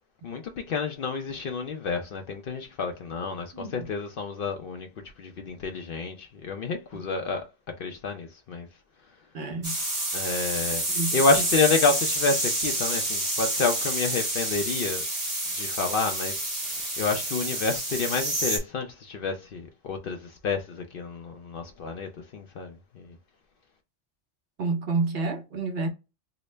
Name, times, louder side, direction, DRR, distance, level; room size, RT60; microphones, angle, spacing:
voice 1, 0.2-4.9 5.2-7.4 7.8-8.7 10.1-10.8 11.1-15.0 15.5-16.5 17.0-23.1, left 4 dB, 60° left, 0.6 m, -29 dB
voice 2, 3.5-3.9 9.3-9.7 10.9-11.4 24.6-25.9, right 3 dB, 60° right, 0.8 m, -29 dB
sound 1, 9.6-18.6, right 1 dB, 30° right, 1.3 m, -28 dB
3.8 x 2.1 x 3.2 m
omnidirectional pair, 1.2 m